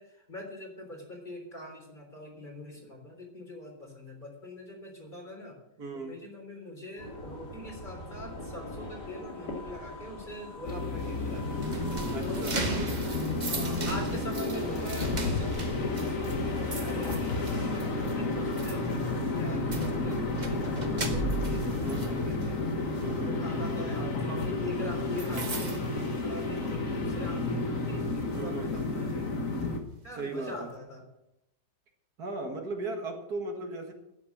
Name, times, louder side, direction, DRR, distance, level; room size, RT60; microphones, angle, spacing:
voice 1, 0.0-5.6 5.9-11.7 12.2-12.9 13.5-22.6 23.2-29.4 30.0-31.1, left 1 dB, 25° left, 0 dB, 3.9 m, -43 dB
voice 2, 5.8-6.2 12.1-12.6 21.8-22.3 23.0-23.5 28.3-28.7 30.1-30.7 32.2-33.9, right 2 dB, 60° right, 3 dB, 2.2 m, -37 dB
sound 1, 7.0-21.2, left 1 dB, 70° left, 3.2 m, -43 dB
sound 2, 10.6-29.8, left 2 dB, 50° left, 1.9 m, -31 dB
sound 3, 11.0-26.9 27.2-27.5 28.0-29.7, right 3 dB, 30° right, 1.2 m, -39 dB
11.5 x 9.4 x 7.3 m, 0.85 s
omnidirectional pair, 1.8 m